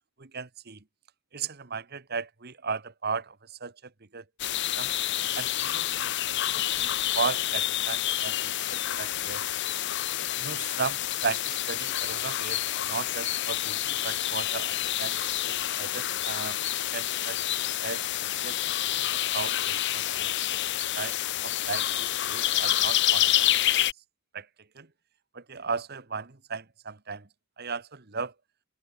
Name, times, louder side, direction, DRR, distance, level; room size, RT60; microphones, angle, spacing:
voice 1, 0.2-0.8 1.3-3.7 4.1-4.2 4.8-4.9 5.3-9.4 10.4-15.2 15.4-16.6 16.9-17.4 17.8-18.6 19.0-20.6 20.9-23.5 24.3-24.5 24.7-24.9 25.3-27.3 27.6-28.3, right 5 dB, 45° right, 1.3 m, -36 dB
sound 1, 4.4-23.9, left 13 dB, 50° left, 0.6 m, -28 dB
open air
head